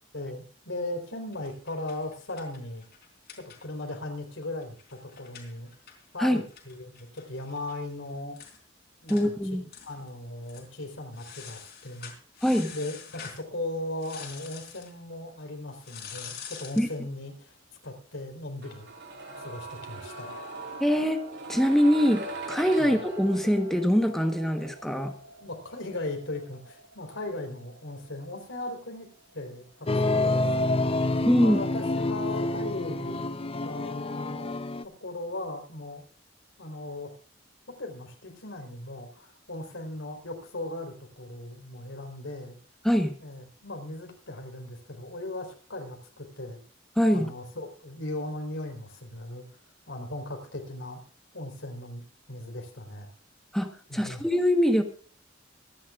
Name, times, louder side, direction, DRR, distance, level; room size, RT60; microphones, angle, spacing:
voice 1, 0.1-2.9 3.4-5.7 6.1-8.4 9.0-9.3 9.8-12.1 12.7-17.6 17.8-18.9 19.4-20.4 22.8-22.9 25.4-29.1 29.3-33.2 33.6-34.5 34.8-36.0 36.6-37.2 37.7-42.6 43.2-46.6 47.1-49.5 49.9-51.0 51.3-52.0 52.3-53.1 53.9-54.2, left 2 dB, 80° left, 3 dB, 4.1 m, -38 dB
sound 1, 1.3-4.0 4.3-4.4 4.6-7.8 8.1-8.2 8.4-8.6 9.1-9.3 9.7-10.1 10.4-10.7 11.1-13.4 14.0-14.9 15.8-17.0, left 7 dB, 60° left, 4.2 m, -46 dB
voice 2, 9.1-9.7 12.4-12.7 16.8-16.9 20.8-21.2 21.5-25.2 31.3-31.6 42.8-43.2 47.0-47.3 53.5-54.8, equal, ahead, 5 dB, 1.2 m, -23 dB
sound 2, 18.6-30.5 30.7-30.8, right 2 dB, 65° right, 3.1 m, -42 dB
sound 3, 29.9-34.8, left 2 dB, 30° left, 0.6 m, -28 dB
25.0 x 10.5 x 2.5 m, 0.41 s
head